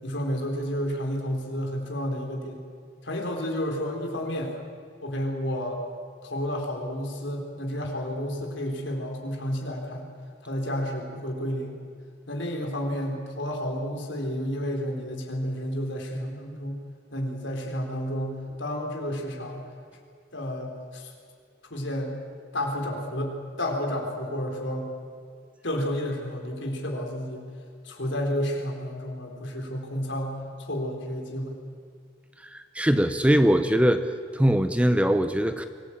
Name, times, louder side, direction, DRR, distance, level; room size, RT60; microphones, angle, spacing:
voice 1, 0.0-2.6 3.0-4.5 5.0-5.8 6.2-10.1 10.4-11.8 12.3-16.8 17.1-19.6 20.3-21.1 21.7-22.2 22.5-24.9 25.6-27.5 27.8-31.6, equal, 70° left, 2 dB, 4.3 m, -31 dB
voice 2, 32.4-34.0 34.3-35.6, equal, 5° right, 9 dB, 0.7 m, -22 dB
24.5 x 18.5 x 8.8 m, 2.1 s
head